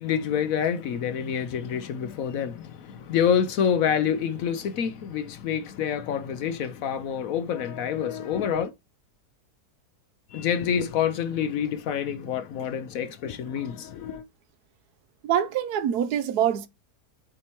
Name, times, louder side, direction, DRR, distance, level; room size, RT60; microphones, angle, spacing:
voice 1, 0.0-8.7 10.3-14.2, left 8 dB, 65° left, 0.9 m, -27 dB
voice 2, 15.2-16.7, right 10 dB, 75° right, 1.2 m, -24 dB
7.6 x 4.3 x 3.0 m
omnidirectional pair, 1.7 m